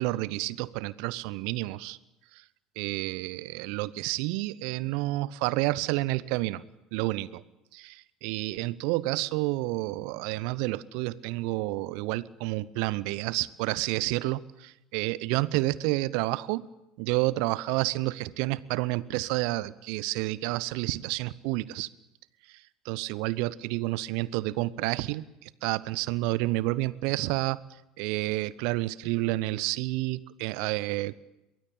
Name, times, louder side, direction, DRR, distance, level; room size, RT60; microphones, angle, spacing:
voice 1, 0.0-2.0 2.8-6.6 6.9-7.4 7.7-16.7 17.0-21.9 22.8-27.6 28.0-31.2, right 19 dB, 60° right, 20 dB, 0.8 m, -30 dB
23.0 x 20.0 x 8.8 m, 0.93 s
figure-of-eight pair, 70°, 0 cm